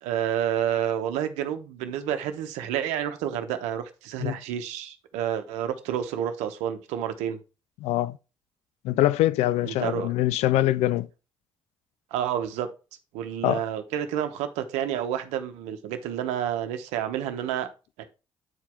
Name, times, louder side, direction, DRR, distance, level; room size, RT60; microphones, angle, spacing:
voice 1, 0.0-7.4 9.6-10.1 12.1-12.7 13.1-17.7 18.0-18.1, right 10 dB, 75° right, 0.9 m, -29 dB
voice 2, 7.8-8.2 8.8-11.1 13.4-13.6, left 15 dB, 70° left, 0.4 m, -23 dB
8.3 x 4.7 x 3.4 m
hypercardioid pair, 45°, 12 cm